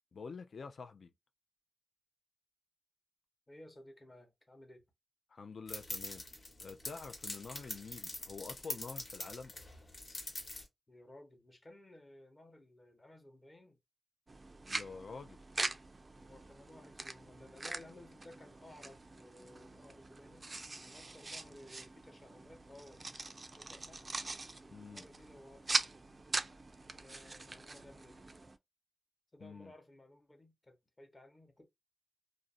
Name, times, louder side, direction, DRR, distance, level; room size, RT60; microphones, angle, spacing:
voice 1, 0.1-1.1 5.3-6.2 6.6-9.5 14.7-15.4 24.7-25.0 29.4-29.7, left 4 dB, 65° left, 0.4 m, -47 dB
voice 2, 3.5-4.9 10.9-13.8 16.2-20.5 20.8-23.0 23.5-24.1 24.9-25.8 27.0-28.3 29.3-31.7, left 1 dB, 25° left, 0.9 m, -57 dB
sound 1, 5.7-10.6, left 2 dB, 45° left, 1.1 m, -44 dB
sound 2, 14.3-28.6, right 2 dB, 35° right, 0.3 m, -42 dB
2.4 x 2.0 x 2.4 m
wide cardioid pair, 100°, 0 cm